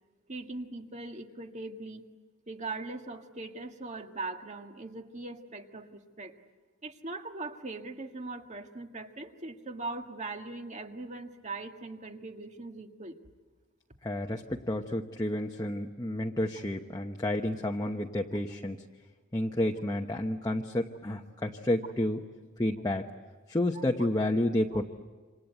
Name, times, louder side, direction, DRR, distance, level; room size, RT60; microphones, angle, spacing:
voice 1, 0.3-2.1 2.5-6.4 6.8-13.1 23.7-23.8, right 3 dB, 35° right, 5 dB, 1.8 m, -40 dB
voice 2, 14.0-18.8 19.3-22.2 22.6-23.1 23.5-24.8, left 1 dB, 20° left, 1 dB, 1.0 m, -30 dB
28.0 x 26.0 x 8.2 m, 1.4 s
head